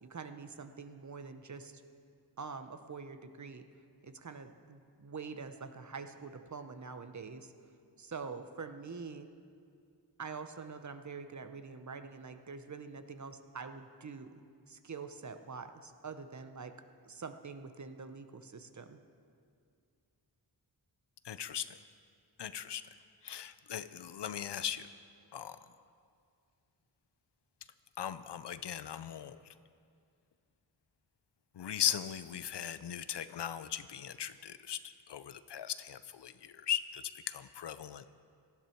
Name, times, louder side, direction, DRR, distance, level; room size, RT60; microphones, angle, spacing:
voice 1, 0.0-1.8 2.4-3.7 4.0-7.5 8.0-9.3 10.2-14.4 14.7-16.7 17.0-19.0, right 5 dB, 40° right, 9 dB, 0.8 m, -45 dB
voice 2, 21.2-21.8 22.4-22.8 23.2-24.9 25.3-25.6 28.0-29.4 31.6-38.0, left 10 dB, 70° left, 13 dB, 0.6 m, -38 dB
18.0 x 13.5 x 4.5 m, 2.3 s
wide cardioid pair, 115°, 43 cm